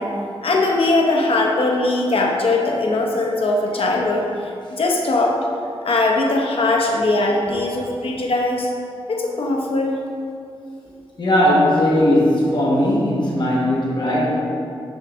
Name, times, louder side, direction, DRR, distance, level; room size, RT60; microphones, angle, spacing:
voice 1, 0.0-5.4 5.8-8.7 9.1-9.9, left 2 dB, 70° left, 0 dB, 0.9 m, -20 dB
voice 2, 11.2-14.3, left 1 dB, 50° left, -5 dB, 1.3 m, -18 dB
6.4 x 3.7 x 6.1 m, 2.5 s
wide cardioid pair, 145°, 10 cm